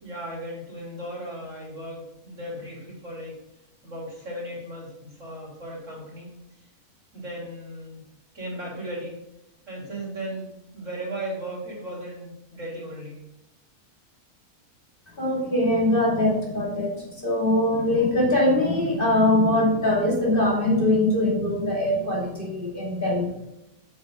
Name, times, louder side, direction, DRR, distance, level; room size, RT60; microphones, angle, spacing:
voice 1, 0.0-3.4 3.8-6.3 7.1-8.0 8.3-9.2 9.7-13.2, right 1 dB, 55° right, -4 dB, 3.7 m, -36 dB
voice 2, 15.2-23.3, left 1 dB, 35° left, -4 dB, 2.8 m, -22 dB
8.3 x 8.3 x 3.8 m, 0.88 s
omnidirectional pair, 1.6 m